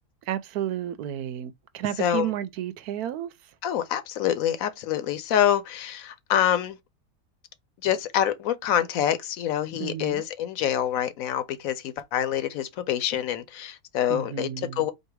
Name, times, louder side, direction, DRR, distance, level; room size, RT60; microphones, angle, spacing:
voice 1, 0.3-3.3 9.8-10.2 14.1-14.8, right 11 dB, 90° right, 1.1 m, -31 dB
voice 2, 3.6-6.8 7.8-14.9, left 10 dB, 75° left, 1.0 m, -26 dB
4.1 x 2.8 x 4.5 m
omnidirectional pair, 1.6 m